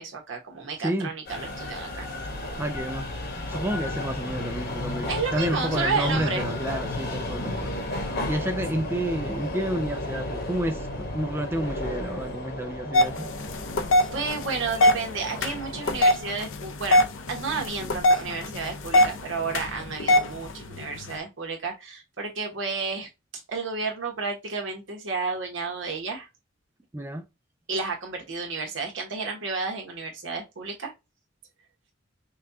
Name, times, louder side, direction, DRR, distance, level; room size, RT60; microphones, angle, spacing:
voice 1, 0.0-2.1 5.1-6.4 14.0-17.0 17.3-23.1 23.5-26.3 27.7-30.9, right 4 dB, 70° right, 1.3 m, -31 dB
voice 2, 0.8-1.1 2.6-3.1 3.5-7.7 8.3-13.3 26.9-27.3, right 1 dB, 10° right, 0.4 m, -30 dB
sound 1, 1.3-16.1, left 1 dB, 55° left, 1.1 m, -33 dB
sound 2, 12.9-21.2, left 1 dB, 75° left, 0.7 m, -24 dB
5.3 x 2.3 x 2.7 m
head